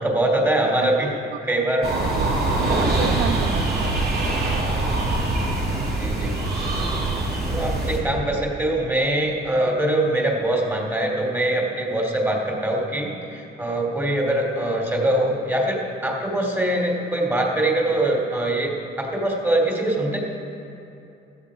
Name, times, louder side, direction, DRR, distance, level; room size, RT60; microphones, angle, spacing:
voice 1, 0.0-1.2 1.5-1.9 5.2-5.3 6.0-6.4 7.5-20.2, right 1 dB, 10° right, -1 dB, 2.9 m, -23 dB
voice 2, 0.6-1.4 1.8-4.0 9.9-10.0, right 8 dB, 75° right, 7 dB, 0.7 m, -32 dB
sound 1, 1.8-8.0, right 2 dB, 55° right, 2.8 m, -23 dB
15.5 x 12.5 x 5.0 m, 2.7 s
cardioid pair, 90°, 20 cm